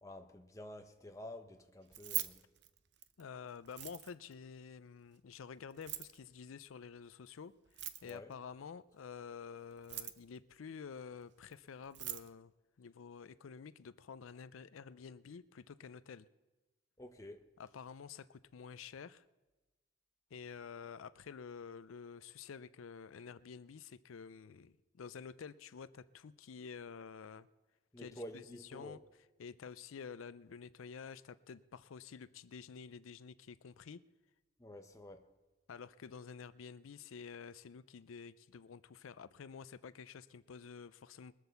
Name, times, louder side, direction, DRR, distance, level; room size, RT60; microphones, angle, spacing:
voice 1, 0.0-2.4 8.1-8.3 17.0-17.4 27.9-29.0 34.6-35.3, left 1 dB, 15° left, 0.9 m, -50 dB
Keys jangling, 1.8-3.2 3.7-4.3 5.7-6.2 7.7-8.3 9.7-10.4 11.5-11.6 11.8-12.3, right 13 dB, 60° right, 0.7 m, -42 dB
voice 2, 3.2-12.5 12.8-16.3 17.6-19.2 20.3-27.5 28.0-28.4 28.7-29.0 29.4-34.0 35.7-41.3, left 6 dB, 90° left, 0.5 m, -50 dB
21.0 x 8.1 x 6.9 m
head